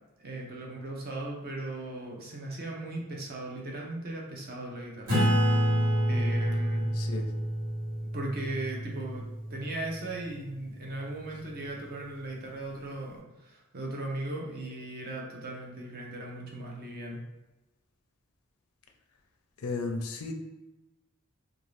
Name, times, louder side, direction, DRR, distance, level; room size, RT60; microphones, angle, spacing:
voice 1, 0.2-5.2 6.0-6.9 8.1-9.2 9.5-17.2, right 1 dB, 45° right, -1 dB, 0.6 m, -38 dB
Acoustic guitar / Strum, 5.1-10.1, equal, 80° right, 1.4 m, -28 dB
voice 2, 6.9-7.3 19.6-20.3, left 3 dB, 75° left, 4 dB, 0.4 m, -34 dB
2.6 x 2.4 x 3.2 m, 1.1 s
head